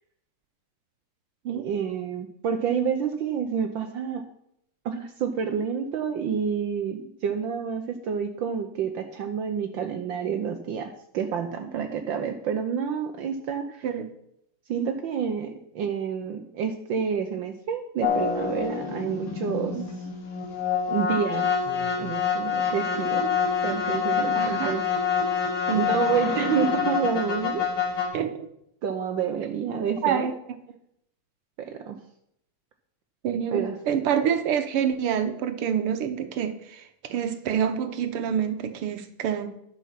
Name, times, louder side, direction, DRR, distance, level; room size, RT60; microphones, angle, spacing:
voice 1, 1.5-4.2 4.8-13.8 14.7-19.8 20.9-21.5 22.0-23.3 23.6-24.8 25.7-27.6 28.8-30.3 31.6-32.0 33.5-33.7, right 7 dB, 70° right, 6 dB, 1.5 m, -29 dB
sound 1, 18.0-28.1, left 6 dB, 80° left, 2.6 m, -26 dB
voice 2, 24.4-24.7 25.7-25.9 28.1-28.5 30.0-30.3 33.2-39.5, right 8 dB, 90° right, 9 dB, 2.0 m, -27 dB
11.5 x 7.2 x 5.8 m, 0.75 s
omnidirectional pair, 2.4 m